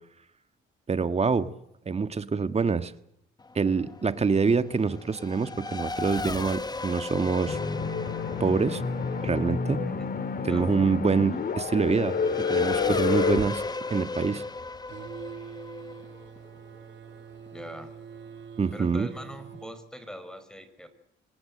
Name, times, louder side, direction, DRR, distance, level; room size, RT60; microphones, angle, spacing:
voice 1, 0.9-1.5 1.8-2.9 3.5-7.6 8.4-8.8 9.2-9.8 10.4-13.6 13.9-14.4 18.6-19.1, right 5 dB, 30° right, 11 dB, 1.7 m, -26 dB
Race car auto racing / Accelerating revving vroom, 3.4-17.5, left 3 dB, 20° left, 1.0 m, -38 dB
sound 1, 7.5-14.6, left 5 dB, 50° left, 2.9 m, -29 dB
voice 2, 10.5-10.9 17.4-17.9 18.7-20.9, equal, 5° left, 11 dB, 5.1 m, -42 dB
sound 2, 14.9-19.8, right 7 dB, 65° right, 2.3 m, -44 dB
26.0 x 19.0 x 7.8 m, 0.76 s
cardioid pair, 90°, 20 cm